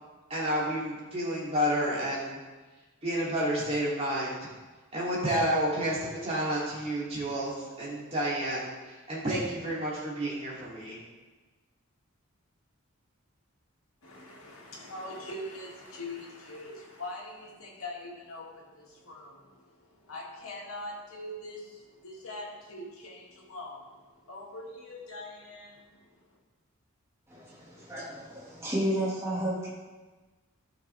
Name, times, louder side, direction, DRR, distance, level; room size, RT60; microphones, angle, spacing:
voice 1, 0.3-2.4 3.0-4.4 4.9-11.0, equal, 30° right, -7 dB, 2.9 m, -30 dB
voice 2, 14.0-26.4, left 1 dB, 85° left, -3 dB, 2.1 m, -43 dB
voice 3, 27.3-29.7, right 1 dB, 15° right, -6 dB, 2.0 m, -32 dB
13.0 x 5.9 x 3.4 m, 1.3 s
head